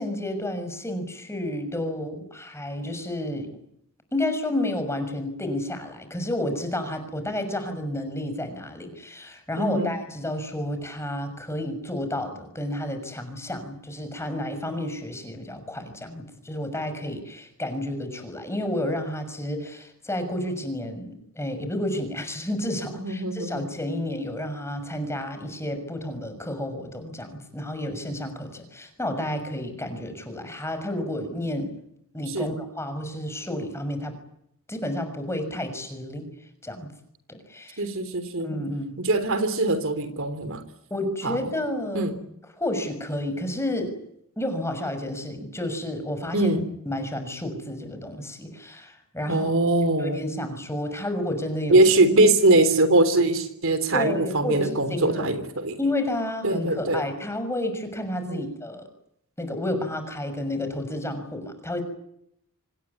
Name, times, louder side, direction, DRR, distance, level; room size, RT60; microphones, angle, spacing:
voice 1, 0.0-3.6 4.1-31.8 32.1-34.2 34.7-36.3 36.6-36.9 37.3-37.9 38.4-39.0 40.9-42.2 42.6-44.0 44.4-46.6 46.8-49.5 50.0-51.8 53.9-55.3 55.8-58.8 59.4-61.8, left 1 dB, 10° left, 8 dB, 6.4 m, -31 dB
voice 2, 9.6-9.9 23.0-23.7 32.3-32.5 37.8-38.5 39.1-40.6 41.2-41.4 41.9-42.2 46.3-46.7 49.3-50.2 51.7-55.8 56.4-57.0 58.2-58.4, right 2 dB, 65° right, 11 dB, 3.6 m, -22 dB
26.5 x 20.5 x 9.7 m, 0.75 s
head